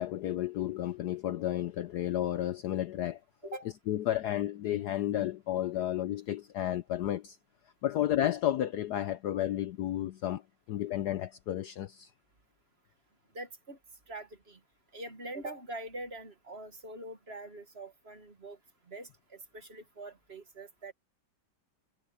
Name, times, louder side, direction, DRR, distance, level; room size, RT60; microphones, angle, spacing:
voice 1, 0.0-3.6 3.9-7.4 7.8-10.4 10.7-12.1, left 12 dB, 70° left, 1.0 m, -32 dB
voice 2, 13.3-13.8 14.1-14.6 14.9-18.6 18.9-20.9, right 2 dB, 35° right, 1.5 m, -44 dB
omnidirectional pair, 2.2 m